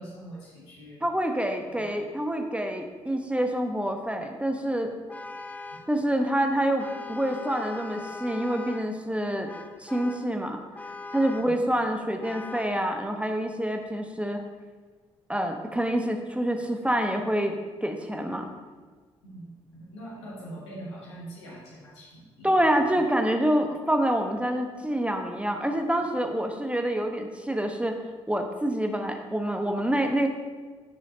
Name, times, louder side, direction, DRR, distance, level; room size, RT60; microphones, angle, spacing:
voice 1, 0.0-1.0 1.7-1.8 5.6-5.9 11.3-11.6 19.2-22.7, right 1 dB, 80° left, -5 dB, 1.7 m, -43 dB
voice 2, 1.0-4.9 5.9-9.5 9.8-10.6 11.1-14.4 15.3-18.5 22.4-28.0 28.3-30.3, right 1 dB, 10° right, 4 dB, 1.0 m, -27 dB
Vehicle horn car horn honking, 5.1-6.0 6.8-9.0 9.5-10.3 10.8-11.6 12.2-12.8, left 3 dB, 10° left, 0.5 m, -40 dB
14.0 x 6.3 x 2.7 m, 1.4 s
figure-of-eight pair, 45°, 14 cm